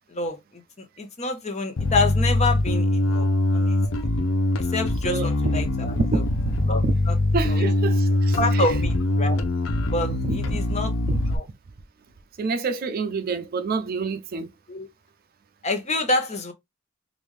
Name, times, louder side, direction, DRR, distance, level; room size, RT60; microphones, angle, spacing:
voice 1, 0.1-3.3 3.5-3.8 4.6-6.2 6.7-7.2 7.5-7.7 8.4-9.5 9.9-10.9 11.3-11.4 14.7-14.9 15.6-16.5, left 2 dB, 35° left, 0.9 m, -28 dB
Bass guitar, 1.8-11.4, left 2 dB, 85° left, 0.6 m, -23 dB
voice 2, 6.0-6.9 7.3-8.7 10.3-10.8 11.1-11.2 12.4-14.5, right 4 dB, 50° right, 0.4 m, -28 dB
3.6 x 2.5 x 3.2 m
head